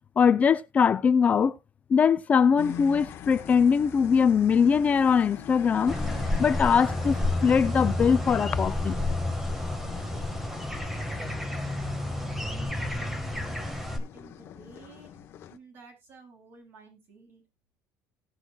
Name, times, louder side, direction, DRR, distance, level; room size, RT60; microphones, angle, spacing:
voice 1, 0.2-1.6 1.9-5.9 6.4-9.0, left 6 dB, 25° left, 0.4 m, -22 dB
sound 1, 2.6-15.6, left 10 dB, 45° left, 1.1 m, -44 dB
sound 2, 5.9-14.0, left 1 dB, 5° right, 1.6 m, -30 dB
voice 2, 12.0-12.6 12.9-15.1 15.5-17.4, right 3 dB, 45° right, 7.4 m, -52 dB
18.0 x 6.1 x 2.3 m
cardioid pair, 145°, 5 cm